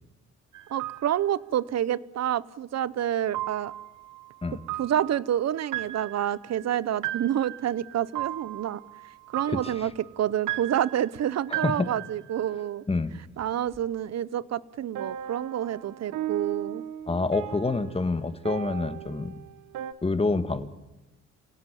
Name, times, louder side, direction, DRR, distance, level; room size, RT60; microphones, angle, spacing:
sound 1, 0.5-1.2 3.3-12.6 14.9-19.9, right 13 dB, 90° right, 1.3 m, -37 dB
voice 1, 0.7-3.7 4.8-8.8 9.3-12.8 13.4-16.8, right 10 dB, 60° right, 19 dB, 0.9 m, -28 dB
voice 2, 9.5-9.9 11.5-11.9 12.9-13.2 17.1-19.3 20.0-20.7, left 3 dB, 20° left, 10 dB, 1.9 m, -27 dB
27.5 x 17.5 x 9.2 m, 0.97 s
cardioid pair, 90°, 30 cm